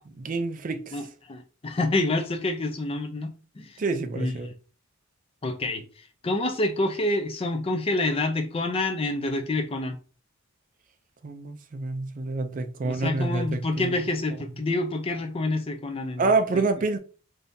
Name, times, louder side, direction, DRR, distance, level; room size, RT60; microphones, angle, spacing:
voice 1, 0.2-1.0 3.8-4.5 11.2-14.0 16.2-17.0, right 3 dB, 35° right, 0.4 m, -27 dB
voice 2, 0.9-3.8 4.1-4.5 5.4-10.0 12.8-16.2, left 2 dB, 25° left, 0.4 m, -28 dB
3.5 x 2.7 x 2.6 m
head